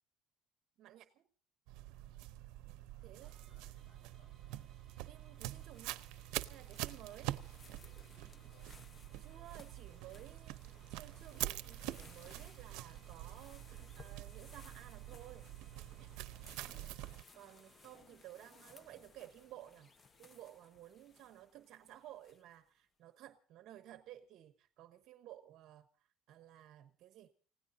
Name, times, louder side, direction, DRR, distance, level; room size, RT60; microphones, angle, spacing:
voice 1, 0.8-1.3 3.0-3.3 5.0-6.0 6.5-7.4 9.2-15.5 17.3-19.9 20.2-25.9 26.3-27.3, right 13 dB, 55° right, 10 dB, 1.0 m, -55 dB
sound 1, 1.7-17.2, right 16 dB, 90° right, 0.7 m, -46 dB
voice 2, 2.9-4.4 7.4-8.8 18.2-18.3, left 4 dB, 60° left, 7 dB, 5.7 m, -72 dB
sound 2, 3.2-18.0, right 2 dB, 5° right, 3.4 m, -70 dB
sound 3, 4.9-22.7, left 4 dB, 25° left, 0.9 m, -62 dB
30.0 x 16.5 x 2.6 m, 0.41 s
cardioid pair, 155°, 0 cm